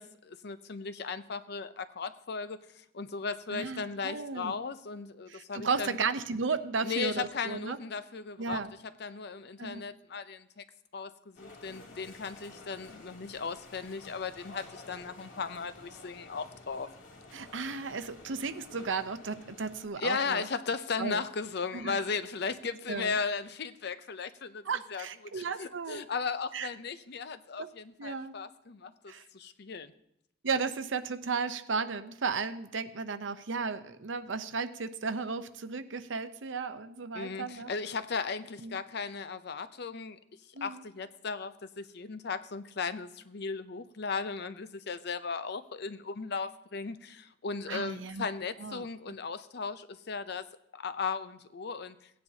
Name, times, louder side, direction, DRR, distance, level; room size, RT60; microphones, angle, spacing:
voice 1, 0.0-5.9 6.8-8.6 9.0-10.6 10.9-16.9 20.0-24.6 24.9-25.1 25.3-29.9 37.1-40.2 40.6-50.4 50.7-52.0, left 5 dB, 60° left, 12 dB, 0.7 m, -36 dB
voice 2, 3.5-4.5 5.3-7.8 8.4-8.7 9.6-9.8 17.3-20.5 21.0-21.2 21.7-22.0 22.9-23.2 24.6-26.1 26.5-26.7 27.6-27.7 28.0-28.4 29.1-29.2 30.4-37.7 38.6-38.8 40.5-40.8 47.7-48.3 48.6-48.9, right 4 dB, 85° right, 11 dB, 0.8 m, -34 dB
sound 1, 11.3-19.9, left 2 dB, 85° left, 2.9 m, -51 dB
17.0 x 9.6 x 2.8 m, 0.79 s
head